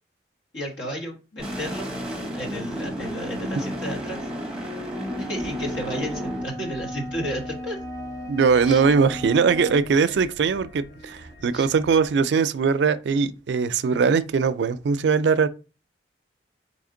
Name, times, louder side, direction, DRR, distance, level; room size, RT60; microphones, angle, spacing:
voice 1, 0.5-1.9 2.3-4.3 5.2-7.8 8.6-8.8 11.5-11.7, equal, 80° left, 1.4 m, -32 dB
sound 1, 1.4-6.4, equal, 5° right, 0.7 m, -32 dB
Wind instrument woodwind instrument, 4.7-9.9, left 1 dB, 20° left, 0.4 m, -36 dB
sound 2, 5.4-12.2, left 1 dB, 60° left, 1.0 m, -45 dB
voice 2, 8.3-15.5, right 5 dB, 75° right, 0.4 m, -21 dB
4.2 x 3.2 x 3.7 m
head